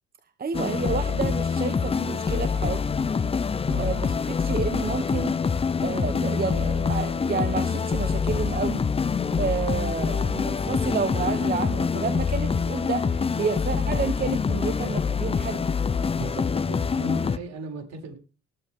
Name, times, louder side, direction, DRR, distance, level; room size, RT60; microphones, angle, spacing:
voice 1, 0.4-3.0 3.8-4.1 4.4-5.4 5.8-8.8 9.3-15.7, right 5 dB, 30° right, 10 dB, 1.1 m, -30 dB
sound 1, 0.5-17.4, left 5 dB, 20° left, 0.6 m, -25 dB
voice 2, 16.1-18.1, right 3 dB, 65° right, 1 dB, 6.4 m, -37 dB
19.5 x 8.2 x 3.6 m, 0.33 s
cardioid pair, 95°, 29 cm